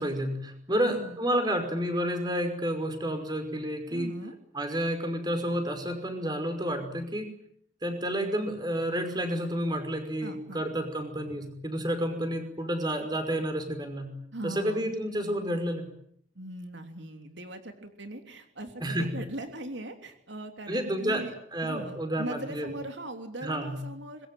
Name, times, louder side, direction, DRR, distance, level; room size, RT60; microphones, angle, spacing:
voice 1, 0.0-4.1 4.5-7.3 7.8-14.2 14.4-15.9 18.8-19.1 20.7-21.2 21.5-22.7 23.4-23.8, equal, 25° right, 7 dB, 5.5 m, -30 dB
voice 2, 0.7-1.2 3.9-4.3 10.2-10.6 14.3-14.8 16.3-24.3, right 1 dB, 85° right, 6 dB, 3.1 m, -40 dB
25.5 x 22.0 x 9.2 m, 0.68 s
head